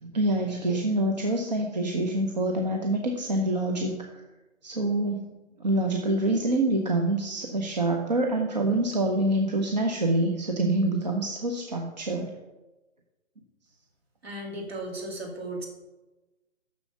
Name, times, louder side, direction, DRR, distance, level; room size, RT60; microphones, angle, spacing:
voice 1, 0.0-4.0 4.6-5.2 5.6-12.3, right 1 dB, 35° right, 1 dB, 0.8 m, -26 dB
voice 2, 14.2-15.7, right 1 dB, 50° right, 0 dB, 2.8 m, -35 dB
7.0 x 6.5 x 7.0 m, 1.1 s
figure-of-eight pair, 150°, 39 cm